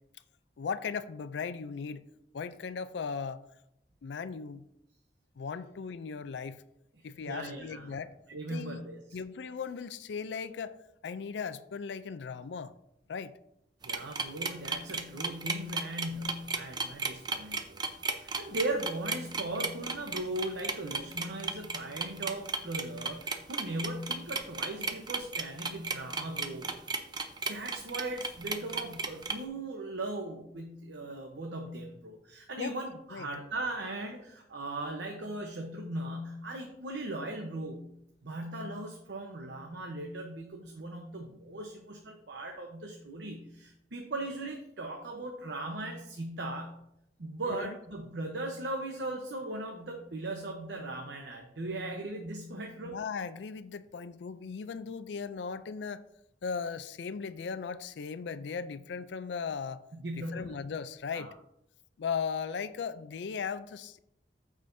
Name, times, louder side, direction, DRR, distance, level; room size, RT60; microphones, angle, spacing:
voice 1, 0.6-2.1 2.3-3.5 4.0-4.6 5.4-6.6 7.0-8.1 8.5-8.8 9.1-10.8 11.0-12.7 13.1-13.4 32.6-32.7 33.1-33.3 47.5-47.8 52.8-56.0 56.4-59.8 60.1-61.3 62.0-64.0, left 6 dB, 75° left, 0.4 m, -37 dB
voice 2, 7.2-8.0 8.3-9.0 13.8-17.8 18.1-26.7 27.5-37.8 38.2-46.7 47.2-53.0 59.9-60.6 61.1-61.3, right 1 dB, 80° right, 0.9 m, -38 dB
sound 1, 13.8-29.4, right 4 dB, 25° right, 0.6 m, -34 dB
14.5 x 4.9 x 2.7 m
head